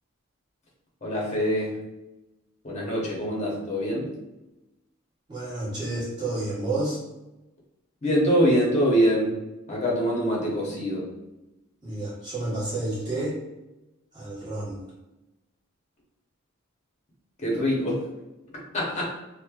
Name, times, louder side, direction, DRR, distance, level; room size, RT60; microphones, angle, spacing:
voice 1, 1.0-1.8 2.6-4.1 8.0-9.3 9.7-11.1 17.4-18.0 18.7-19.0, equal, 30° left, -3 dB, 0.7 m, -24 dB
voice 2, 5.3-7.0 11.8-13.4 14.1-14.8, right 2 dB, 20° right, -9 dB, 1.0 m, -30 dB
3.0 x 2.0 x 2.3 m, 0.99 s
head